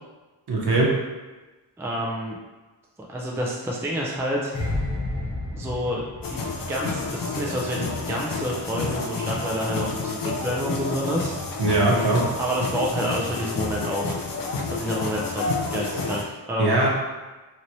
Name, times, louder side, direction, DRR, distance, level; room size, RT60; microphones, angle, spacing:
voice 1, 0.5-0.9 11.6-12.2 16.6-16.9, right 2 dB, 60° right, -3 dB, 0.9 m, -20 dB
voice 2, 1.8-2.4 3.1-4.5 5.5-6.0 6.3-6.4 6.7-11.3 12.4-14.2 14.7-16.8, equal, 5° right, -3 dB, 0.4 m, -28 dB
sound 1, 4.5-7.7 8.0-8.3, left 2 dB, 15° left, 1.0 m, -31 dB
sound 2, 6.2-16.2, left 4 dB, 50° left, 0.5 m, -30 dB
3.0 x 3.0 x 2.6 m, 1.2 s
wide cardioid pair, 90°, 45 cm